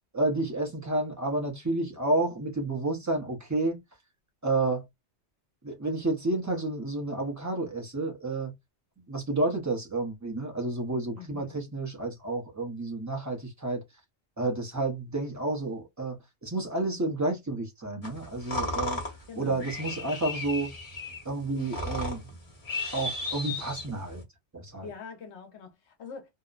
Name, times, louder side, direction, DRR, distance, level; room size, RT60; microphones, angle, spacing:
voice 1, 0.1-3.8 4.4-4.8 5.6-8.5 9.1-13.8 14.4-16.2 16.4-19.0 19.4-20.7 21.2-22.2 22.9-24.2 24.5-24.9, right 2 dB, 20° right, 0.6 m, -30 dB
voice 2, 11.1-11.6 19.3-20.1 24.8-26.3, left 6 dB, 75° left, 1.1 m, -45 dB
sound 1, 18.0-24.2, left 2 dB, 35° left, 1.0 m, -35 dB
2.8 x 2.1 x 2.4 m
omnidirectional pair, 1.1 m